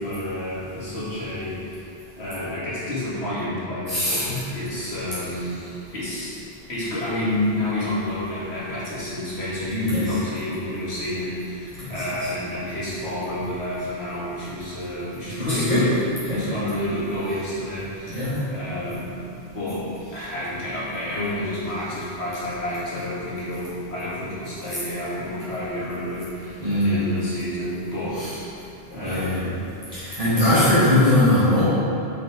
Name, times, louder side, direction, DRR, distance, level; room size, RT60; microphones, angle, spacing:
voice 1, 0.0-5.6 5.9-6.4 6.7-16.0 16.3-19.9 20.1-28.4 28.9-29.6 30.4-30.8, left 1 dB, 85° left, -9 dB, 2.3 m, -29 dB
voice 2, 3.9-4.4 9.8-10.0 11.8-11.9 15.4-15.8 16.2-16.5 18.1-18.4 26.6-27.0 28.2-28.3 29.0-29.4 29.9-31.6, left 1 dB, 35° right, -12 dB, 1.5 m, -21 dB
6.7 x 6.1 x 4.7 m, 2.7 s
omnidirectional pair, 1.1 m